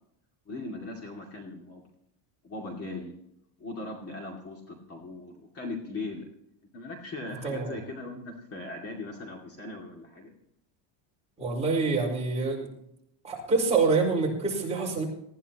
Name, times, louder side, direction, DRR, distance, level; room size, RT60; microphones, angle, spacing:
voice 1, 0.5-1.8 2.4-3.1 3.6-6.3 6.7-10.3, left 2 dB, 30° left, 1 dB, 2.5 m, -39 dB
voice 2, 7.4-7.8 11.4-12.7 13.2-15.0, right 4 dB, 15° right, -3 dB, 5.2 m, -26 dB
20.0 x 15.0 x 3.0 m, 0.75 s
cardioid pair, 170°, 47 cm